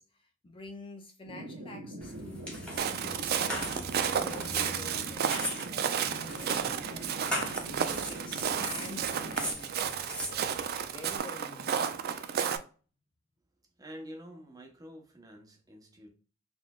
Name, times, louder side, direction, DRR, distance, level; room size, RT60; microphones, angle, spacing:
voice 1, 0.0-3.6 4.1-12.3, left 2 dB, 25° left, 0.4 m, -48 dB
sound 1, 1.3-9.5, right 1 dB, 90° right, 1.0 m, -43 dB
sound 2, 2.0-11.2, equal, 5° left, 1.2 m, -40 dB
Walk footsteps, 2.8-12.6, right 8 dB, 50° right, 0.4 m, -32 dB
voice 2, 13.8-16.1, equal, 15° right, 0.8 m, -48 dB
4.0 x 3.2 x 2.3 m
head